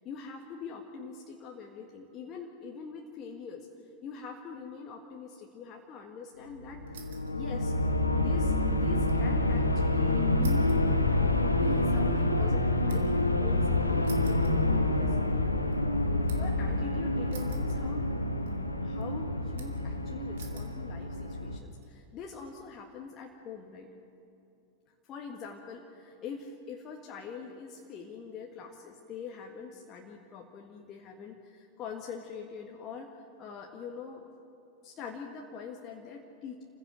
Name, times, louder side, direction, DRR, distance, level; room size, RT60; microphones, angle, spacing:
voice 1, 0.0-3.7 4.0-7.7 8.1-10.7 11.2-15.4 16.2-18.1 18.8-23.9 25.0-34.2 34.8-36.6, left 5 dB, 30° left, 1 dB, 1.7 m, -44 dB
sound 1, 6.6-21.6, left 2 dB, 85° left, 1.2 m, -27 dB
sound 2, 6.9-7.4 7.7-9.3 9.6-9.7 10.4-13.3 14.0-15.2 15.6-16.6 17.3-18.2 18.5-19.0 19.6-19.9 20.4-20.8 21.4-21.9, right 7 dB, 55° right, 2.5 m, -52 dB
28.5 x 16.0 x 6.3 m, 2.8 s
figure-of-eight pair, 90°, 0 cm